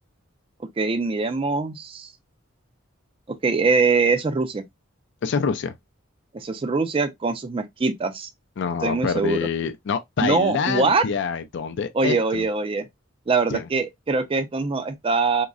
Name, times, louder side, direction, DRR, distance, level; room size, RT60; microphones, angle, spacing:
voice 1, 0.8-2.1 3.4-4.6 6.3-8.3 8.8-9.4 10.2-11.0 11.9-12.8 13.3-15.5, right 4 dB, 25° right, 0.4 m, -23 dB
voice 2, 5.2-5.7 8.6-12.5 13.5-13.7, left 6 dB, 60° left, 0.4 m, -26 dB
3.7 x 2.0 x 2.3 m
head